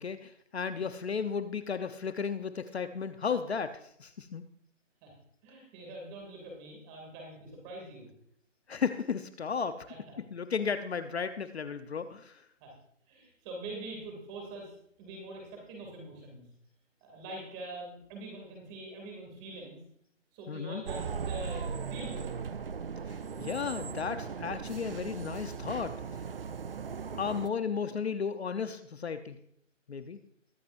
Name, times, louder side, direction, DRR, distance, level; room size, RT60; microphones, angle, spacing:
voice 1, 0.0-4.4 8.7-9.9 10.2-12.4 20.5-20.8 23.4-26.2 27.2-29.4 29.9-30.2, left 6 dB, 55° left, 10 dB, 0.9 m, -34 dB
voice 2, 5.4-8.1 9.9-10.1 12.6-12.7 13.1-16.5 17.0-19.8 20.3-22.3, right 2 dB, 15° right, 1 dB, 2.5 m, -44 dB
sound 1, 20.9-27.5, right 6 dB, 45° right, 0.6 m, -38 dB
22.0 x 8.5 x 2.6 m, 0.69 s
hypercardioid pair, 165°, 39 cm